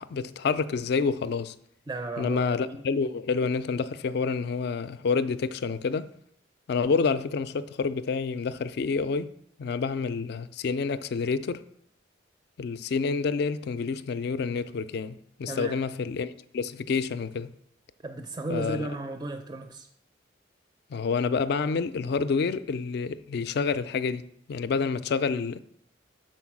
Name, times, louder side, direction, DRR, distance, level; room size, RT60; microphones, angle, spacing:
voice 1, 0.0-1.5 2.2-6.1 6.7-9.3 9.6-11.6 12.6-17.5 18.5-18.9 20.9-24.2 24.5-25.6, left 5 dB, 60° left, 0.4 m, -28 dB
voice 2, 1.9-2.8 15.5-15.8 18.0-19.9, right 2 dB, 20° right, 0.4 m, -34 dB
6.3 x 4.4 x 5.9 m
head